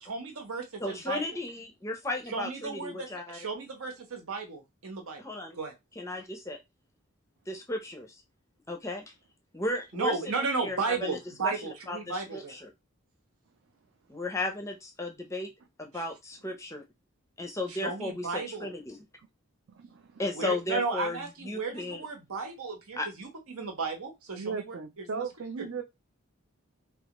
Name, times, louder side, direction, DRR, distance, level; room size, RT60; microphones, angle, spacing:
voice 1, 0.0-1.4 2.3-5.2 5.5-5.7 9.9-12.5 15.9-16.0 17.7-18.7 20.3-25.3 25.6-25.7, right 4 dB, 80° right, 1.0 m, -34 dB
voice 2, 0.8-3.4 5.2-5.6 6.0-6.6 7.5-8.2 8.7-9.0 9.5-11.2 11.4-12.7 14.1-15.5 15.8-16.8 17.4-19.0 20.2-22.0 23.0-23.1, left 2 dB, 15° left, 0.5 m, -35 dB
voice 3, 19.7-20.2 24.3-25.8, right 5 dB, 60° right, 0.4 m, -37 dB
3.3 x 2.3 x 2.9 m
head